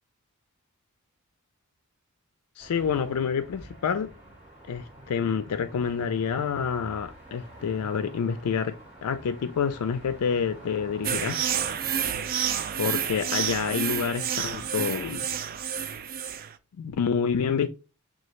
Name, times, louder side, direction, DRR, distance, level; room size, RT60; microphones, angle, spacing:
voice 1, 2.6-4.1 4.7-11.5 12.8-15.3 16.8-17.7, left 6 dB, 90° left, 0.4 m, -28 dB
sound 1, 2.6-12.1, right 1 dB, 5° right, 2.3 m, -47 dB
sound 2, 11.0-16.5, right 8 dB, 40° right, 0.3 m, -29 dB
6.6 x 2.4 x 3.0 m
head